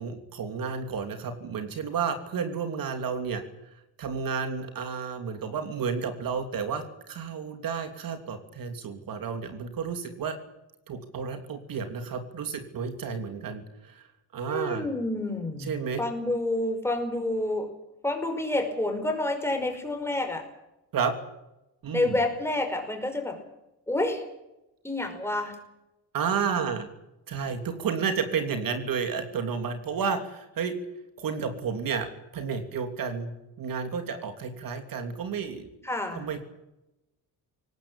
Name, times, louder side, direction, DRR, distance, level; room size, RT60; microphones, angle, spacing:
voice 1, 0.0-3.4 4.0-10.4 10.9-14.0 14.3-14.9 15.7-16.0 20.9-21.1 21.8-22.1 26.1-26.9 27.3-30.8 31.2-35.7 36.1-36.4, right 6 dB, 60° right, 7 dB, 3.0 m, -31 dB
voice 2, 14.5-17.7 18.0-20.5 21.9-23.4 23.9-24.2 24.8-25.6 35.8-36.3, left 2 dB, 5° left, 4 dB, 5.3 m, -29 dB
22.5 x 19.0 x 8.9 m, 0.91 s
cardioid pair, 140°, 39 cm